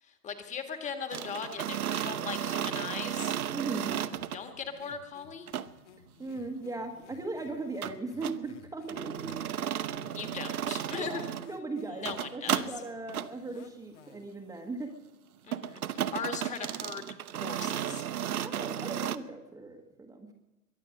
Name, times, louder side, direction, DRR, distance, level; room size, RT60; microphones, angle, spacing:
voice 1, 0.0-3.4 4.3-5.5 10.0-11.3 11.8-12.7 15.4-18.0, left 6 dB, 15° left, 7 dB, 1.8 m, -39 dB
sound 1, 1.1-4.4 5.5-5.7 7.8-8.4 8.9-11.5 11.9-12.7 13.1-13.3 15.5-19.2, right 10 dB, 70° right, 0.9 m, -34 dB
voice 2, 3.5-4.0 6.2-9.5 11.0-14.9 18.4-20.3, right 3 dB, 5° right, 3 dB, 1.4 m, -38 dB
sound 2, 3.8-14.4, left 8 dB, 50° left, 1.5 m, -56 dB
22.5 x 9.8 x 6.6 m, 1.0 s
hypercardioid pair, 125°, 45 cm